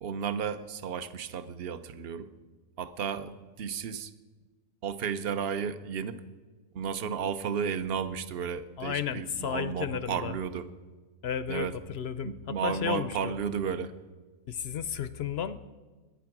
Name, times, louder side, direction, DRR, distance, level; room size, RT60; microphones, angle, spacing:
voice 1, 0.0-2.3 2.8-4.1 4.8-6.2 6.7-10.7 11.5-11.8 12.2-13.9, right 7 dB, 50° right, 12 dB, 0.9 m, -33 dB
voice 2, 8.8-10.4 11.2-13.3 14.5-15.7, left 8 dB, 60° left, 14 dB, 0.7 m, -33 dB
22.0 x 9.6 x 6.0 m, 1.3 s
omnidirectional pair, 1.5 m